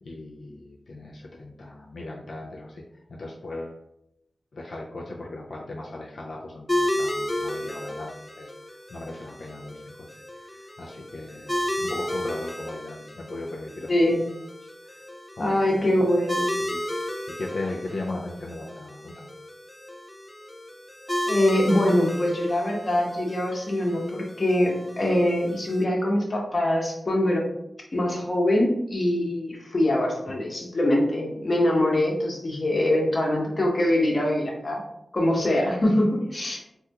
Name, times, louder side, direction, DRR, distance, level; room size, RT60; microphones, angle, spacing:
voice 1, 0.0-3.8 4.5-14.0 14.6-15.0 15.3-15.9 16.6-16.8 17.4-19.3 35.8-36.0, left 2 dB, 80° left, -3 dB, 0.4 m, -38 dB
sound 1, 6.7-25.8, left 1 dB, 15° left, 0.4 m, -33 dB
voice 2, 13.9-14.2 15.4-16.5 21.3-27.4 27.9-34.8 35.1-36.6, left 1 dB, 45° left, -1 dB, 0.9 m, -23 dB
3.5 x 2.3 x 2.8 m, 0.79 s
wide cardioid pair, 75°, 0 cm